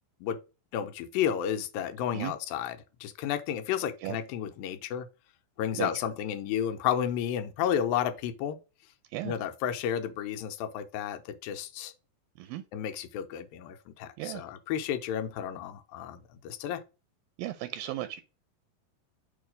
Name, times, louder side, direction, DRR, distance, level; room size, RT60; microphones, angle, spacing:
voice 1, 0.7-5.1 5.6-8.6 9.2-11.9 12.7-16.8, left 9 dB, 85° left, 2.4 m, -32 dB
voice 2, 17.4-18.2, right 15 dB, 85° right, 2.2 m, -35 dB
6.7 x 3.0 x 5.1 m
omnidirectional pair, 4.1 m